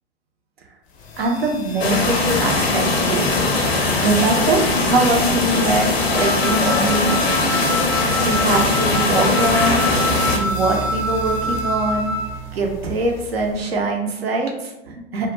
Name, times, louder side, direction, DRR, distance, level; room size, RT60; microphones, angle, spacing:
sound 1, 0.9-13.8, right 2 dB, 25° left, 0.5 m, -36 dB
voice 1, 1.2-3.3 4.0-7.2 8.2-9.8 10.2-12.1 12.5-15.3, right 2 dB, 75° right, 2 dB, 0.7 m, -22 dB
sound 2, 1.8-10.4, left 3 dB, 80° left, 0.6 m, -20 dB
Wind instrument woodwind instrument, 6.1-12.4, left 1 dB, 20° right, 0.8 m, -26 dB
2.3 x 2.1 x 3.1 m, 0.96 s
figure-of-eight pair, 105°, 31 cm